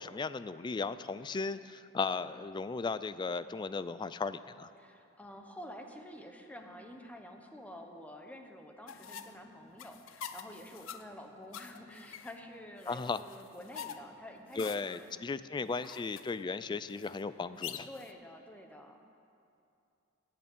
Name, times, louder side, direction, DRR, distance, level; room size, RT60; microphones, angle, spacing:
voice 1, 0.0-4.7 12.9-13.2 14.6-17.9, left 4 dB, 25° left, 14 dB, 0.3 m, -36 dB
voice 2, 4.8-15.1 15.4-15.8 17.9-19.0, left 1 dB, 5° left, 3 dB, 1.0 m, -49 dB
sound 1, 8.9-18.1, left 8 dB, 90° left, 0.5 m, -47 dB
10.5 x 8.6 x 8.3 m, 2.6 s
head